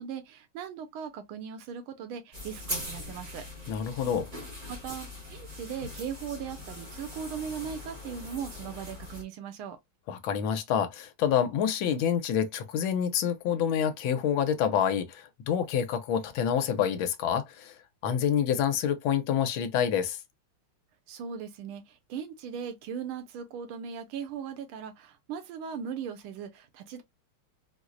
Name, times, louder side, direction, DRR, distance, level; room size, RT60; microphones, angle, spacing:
voice 1, 0.0-3.4 4.7-9.8 21.1-27.0, right 7 dB, 80° right, 1.5 m, -38 dB
sound 1, 2.3-9.2, left 1 dB, 45° right, 0.5 m, -41 dB
voice 2, 3.7-4.3 10.1-17.7 18.0-20.2, left 8 dB, 75° left, 1.4 m, -27 dB
4.4 x 2.0 x 2.4 m
omnidirectional pair, 2.3 m